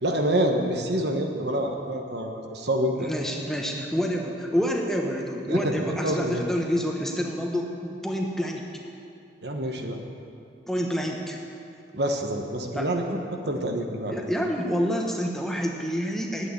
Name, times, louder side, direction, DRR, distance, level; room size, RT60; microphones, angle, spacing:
voice 1, 0.0-3.1 5.5-6.4 9.4-10.0 11.9-14.2, right 1 dB, 70° right, 3 dB, 1.2 m, -27 dB
voice 2, 3.0-8.6 10.7-11.4 12.7-12.9 14.1-16.5, equal, ahead, 0 dB, 1.0 m, -28 dB
9.1 x 8.9 x 9.6 m, 2.5 s
head